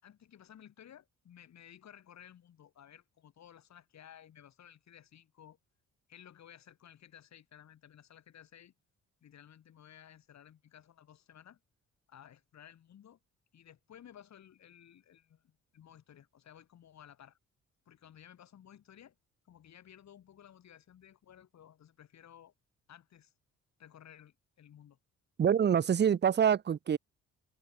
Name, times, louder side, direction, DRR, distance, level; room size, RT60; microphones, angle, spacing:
voice 1, 0.0-5.6 6.1-8.7 9.2-11.6 12.1-13.2 13.5-17.4 17.8-19.1 19.4-22.5 22.9-23.3 23.8-25.0, left 10 dB, 65° left, 5.0 m, -56 dB
voice 2, 25.4-27.0, right 8 dB, 35° right, 0.7 m, -26 dB
cardioid pair, 90°, 30 cm